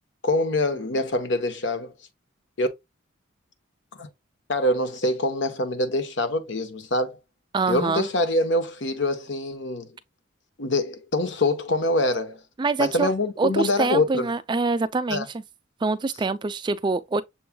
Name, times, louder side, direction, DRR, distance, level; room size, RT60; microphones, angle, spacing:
voice 1, 0.2-1.9 2.6-2.7 4.0-4.1 4.5-7.2 7.7-9.9 10.6-12.4 12.8-14.3 15.1-15.3, left 2 dB, 60° left, 0.9 m, -24 dB
voice 2, 7.5-8.1 12.6-13.1 13.4-15.3 15.8-17.2, right 3 dB, 20° right, 0.3 m, -25 dB
7.0 x 3.1 x 2.2 m
head